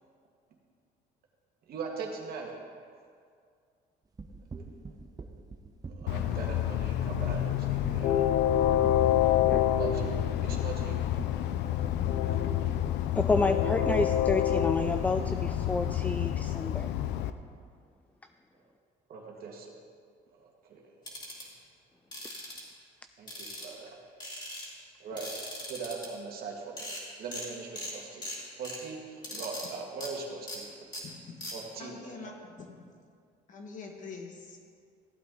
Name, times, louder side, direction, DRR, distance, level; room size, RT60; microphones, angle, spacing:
voice 1, 1.7-2.5 5.9-8.5 9.7-11.1 13.8-14.0 19.1-19.7 20.3-20.8 23.2-24.0 25.0-25.3 25.7-26.9 27.2-28.2 28.6-30.7 31.5-32.1, right 5 dB, 65° right, 0 dB, 1.9 m, -40 dB
sound 1, 4.2-16.1, right 4 dB, 20° right, 0.8 m, -43 dB
Train, 6.1-17.3, left 11 dB, 85° left, 0.5 m, -28 dB
voice 2, 13.1-16.9, left 3 dB, 10° left, 8 dB, 0.3 m, -29 dB
sound 2, 21.1-21.4 22.1-22.6 23.3-23.9 24.2-24.7 25.2-26.1 26.5-26.6 26.8-27.0 27.3-27.5 27.8-27.9 28.2-28.8 29.2-29.7 30.0-30.1 30.5-30.6 30.9-31.0 31.4-31.5, left 1 dB, 25° left, 3.1 m, -39 dB
voice 3, 31.8-32.8 33.5-34.6, left 4 dB, 50° left, 2 dB, 1.7 m, -44 dB
15.0 x 8.3 x 3.9 m, 2.2 s
cardioid pair, 110°, 17 cm